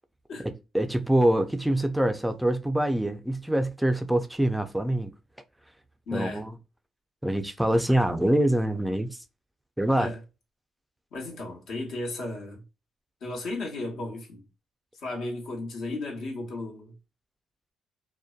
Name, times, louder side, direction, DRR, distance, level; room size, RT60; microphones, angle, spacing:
voice 1, 0.4-5.1 6.1-6.5 7.2-9.2 9.8-10.1, right 1 dB, 5° right, 0.3 m, -25 dB
voice 2, 6.1-6.5 9.9-10.2 11.1-12.6 13.2-14.5 15.0-16.9, left 2 dB, 75° left, 1.0 m, -34 dB
2.6 x 2.1 x 2.3 m
cardioid pair, 90°, 0 cm